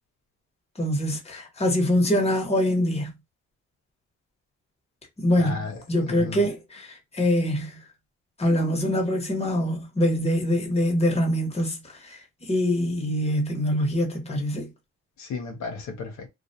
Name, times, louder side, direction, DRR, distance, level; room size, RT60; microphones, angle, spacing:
voice 1, 0.8-3.1 5.2-5.5 5.9-6.9 7.2-7.8 8.4-11.8 12.5-14.7, equal, 20° left, 1.0 m, -24 dB
voice 2, 5.4-6.4 15.2-16.3, left 4 dB, 70° left, 0.8 m, -34 dB
2.4 x 2.2 x 2.7 m
cardioid pair, 75°, 29 cm